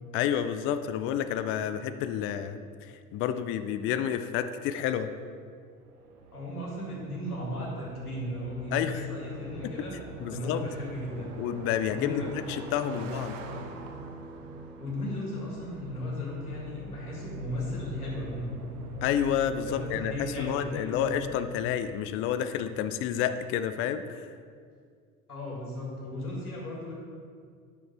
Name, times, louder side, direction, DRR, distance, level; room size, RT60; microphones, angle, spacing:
voice 1, 0.1-5.1 8.7-9.1 9.6-9.7 10.2-10.6 11.4-13.3 19.0-24.3, left 9 dB, 30° left, 10 dB, 0.4 m, -30 dB
sound 1, 5.6-22.7, right 1 dB, 85° right, 0.8 m, -45 dB
voice 2, 6.3-10.0 10.3-11.3 11.9-12.3 12.9-13.1 14.8-18.6 19.6-21.1 25.3-26.9, left 1 dB, 90° left, -3 dB, 2.0 m, -36 dB
Car passing by, 6.6-20.3, right 5 dB, 60° right, 0.9 m, -51 dB
Bass guitar, 13.5-17.8, right 1 dB, 20° right, 1.9 m, -52 dB
9.9 x 6.7 x 3.3 m, 2.1 s
figure-of-eight pair, 75°, 44 cm